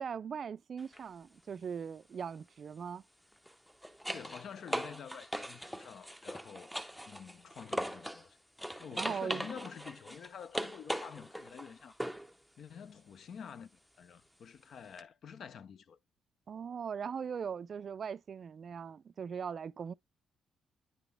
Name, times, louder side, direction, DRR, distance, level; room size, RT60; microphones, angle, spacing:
voice 1, 0.0-3.0 8.9-9.5 16.5-19.9, right 7 dB, 50° right, 0.3 m, -40 dB
sound 1, 0.8-1.0 3.3-8.3 8.6-12.3 15.0-15.1, equal, ahead, 0.6 m, -40 dB
voice 2, 4.1-6.7 7.1-8.4 8.8-11.9 12.6-16.0, left 7 dB, 60° left, 0.5 m, -48 dB
9.8 x 3.8 x 3.3 m
cardioid pair, 90°, 0 cm